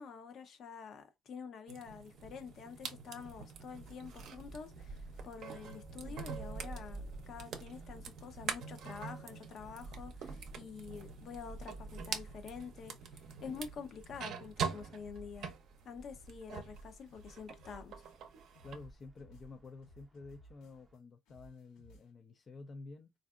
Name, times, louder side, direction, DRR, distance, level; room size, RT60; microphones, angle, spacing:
voice 1, 0.0-15.5 15.8-18.0, left 6 dB, 55° left, 0.7 m, -48 dB
sound 1, 1.7-16.8 17.2-18.8, right 6 dB, 65° right, 0.6 m, -45 dB
sound 2, 1.9-21.0, right 2 dB, 25° right, 0.7 m, -53 dB
sound 3, 2.2-2.9 3.2-5.5 5.8-10.7 10.9-13.2 13.5-15.8 16.1-21.0 21.3-22.1, equal, 80° left, 1.3 m, -60 dB
voice 2, 18.6-23.1, left 3 dB, 35° left, 0.4 m, -51 dB
3.3 x 2.5 x 2.4 m
supercardioid pair, 80°, 0 cm